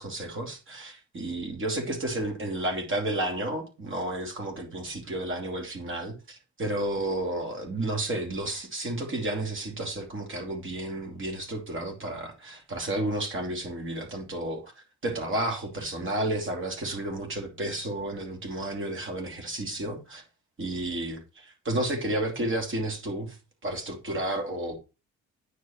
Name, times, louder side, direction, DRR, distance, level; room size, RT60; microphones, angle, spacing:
voice 1, 0.0-14.7 15.0-20.2 20.6-23.4 23.6-24.8, right 1 dB, 40° right, 2.7 m, -32 dB
9.4 x 4.8 x 4.4 m
cardioid pair, 90°, 30 cm